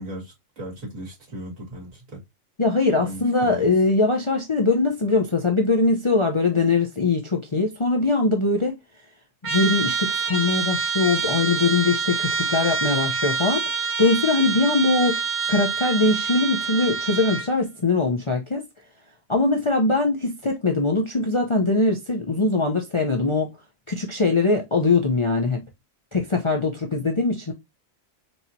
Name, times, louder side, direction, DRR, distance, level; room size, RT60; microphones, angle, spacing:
voice 1, 0.0-2.2 3.0-3.7, equal, 80° right, 2.5 m, -37 dB
voice 2, 2.6-8.8 9.5-15.2 15.5-18.6 19.3-23.5 23.9-25.6 26.1-27.5, left 3 dB, 35° left, 0.5 m, -22 dB
Trumpet, 9.4-17.5, right 5 dB, 35° right, 0.6 m, -26 dB
4.6 x 2.8 x 2.7 m
omnidirectional pair, 1.4 m